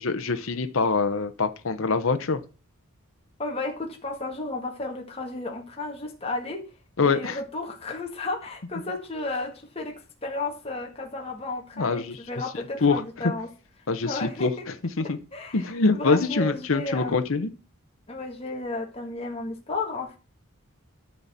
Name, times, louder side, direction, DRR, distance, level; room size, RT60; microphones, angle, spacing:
voice 1, 0.0-2.4 7.0-7.4 11.8-12.2 12.8-13.0 13.9-14.5 15.0-15.2 15.5-17.5, left 4 dB, 65° left, 9 dB, 0.8 m, -24 dB
voice 2, 3.4-6.6 7.0-13.5 14.0-14.5 15.0-17.2 18.1-20.2, left 2 dB, 25° left, 0 dB, 1.8 m, -33 dB
11.5 x 4.2 x 7.3 m, 0.34 s
head